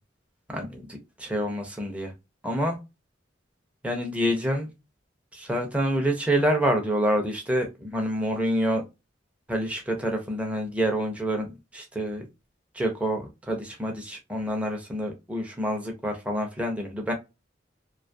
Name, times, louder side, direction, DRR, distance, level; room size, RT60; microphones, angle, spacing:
voice 1, 0.5-0.9 1.2-2.1 2.4-2.8 3.8-4.7 5.3-8.8 9.5-12.2 12.7-17.1, equal, 5° right, 1 dB, 0.4 m, -27 dB
2.5 x 2.3 x 2.5 m, 0.24 s
head